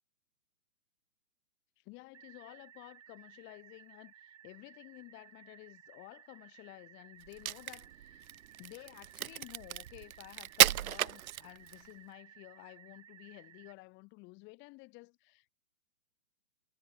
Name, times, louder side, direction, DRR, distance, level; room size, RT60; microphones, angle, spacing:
voice 1, 1.8-8.3 8.6-15.5, left 25 dB, 25° left, 3.5 m, -53 dB
sound 1, 2.1-13.7, right 10 dB, 55° right, 5.4 m, -58 dB
Crack, 7.3-11.9, right 12 dB, 70° right, 0.5 m, -32 dB
figure-of-eight pair, 135°, 44 cm